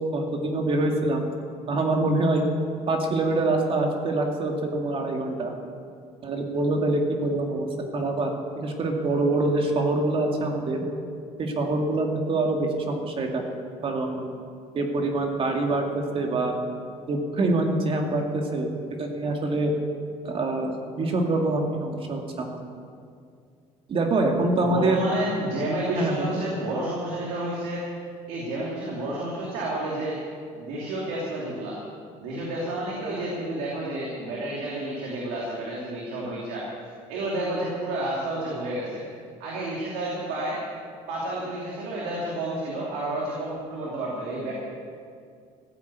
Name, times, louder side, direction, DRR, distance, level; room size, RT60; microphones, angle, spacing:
voice 1, 0.1-1.3 1.7-2.4 2.9-5.5 6.2-7.7 7.9-8.3 8.6-10.8 11.4-13.4 13.8-14.4 14.7-16.5 17.1-18.7 19.0-19.7 20.2-22.5 23.9-25.0 25.9-26.4, right 2 dB, 45° right, 2 dB, 2.4 m, -25 dB
voice 2, 24.6-27.8 28.3-30.2 30.6-31.8 32.2-36.6 37.1-39.0 39.4-40.6 41.1-44.5, right 1 dB, 90° right, -4 dB, 2.9 m, -30 dB
15.0 x 8.5 x 8.4 m, 2.3 s
cardioid pair, 95°, 13 cm